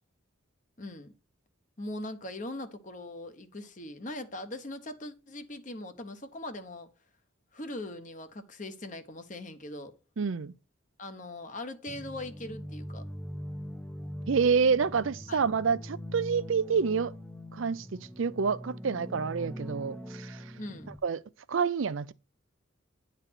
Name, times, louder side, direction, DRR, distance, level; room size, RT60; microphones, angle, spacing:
voice 1, 0.8-1.1 1.8-6.9 7.5-9.9 11.0-13.0 15.3-15.4 20.6-20.9, left 1 dB, 40° left, 1.0 m, -40 dB
voice 2, 10.2-10.5 14.3-17.1 17.5-20.4 21.0-21.2 21.5-22.1, right 5 dB, 70° right, 0.5 m, -28 dB
sound 1, 11.9-21.0, equal, 5° left, 0.6 m, -42 dB
10.0 x 4.1 x 5.9 m
head